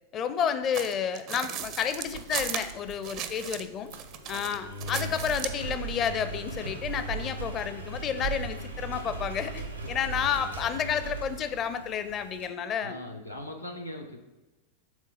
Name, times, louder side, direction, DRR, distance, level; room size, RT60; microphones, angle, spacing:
voice 1, 0.1-3.9 4.3-13.0, left 8 dB, 30° left, 11 dB, 0.5 m, -31 dB
sound 1, 0.7-3.6 3.9-5.6, right 10 dB, 40° right, 0.5 m, -36 dB
Engine, 1.6-12.5, right 3 dB, 85° right, 1.0 m, -38 dB
voice 2, 4.3-4.8 10.0-10.5 12.8-14.2, left 1 dB, 90° left, 1 dB, 0.8 m, -41 dB
6.3 x 3.8 x 5.3 m, 1.1 s
figure-of-eight pair, 90°, 0 cm